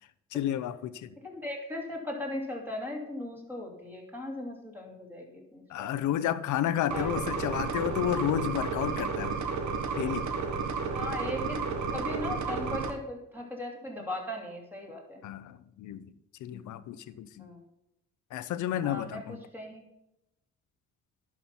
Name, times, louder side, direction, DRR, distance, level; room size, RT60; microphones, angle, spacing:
voice 1, 0.3-1.2 5.7-9.4 10.0-10.3 15.2-16.1 16.4-17.5 18.3-19.4, left 11 dB, 75° left, 14 dB, 0.7 m, -31 dB
voice 2, 1.2-6.1 6.9-7.1 10.8-15.2 17.4-17.6 18.8-19.8, left 1 dB, 5° right, -1 dB, 3.0 m, -38 dB
sound 1, 6.9-12.9, right 5 dB, 70° right, 1.4 m, -32 dB
10.5 x 5.9 x 5.6 m, 0.88 s
cardioid pair, 90°, 30 cm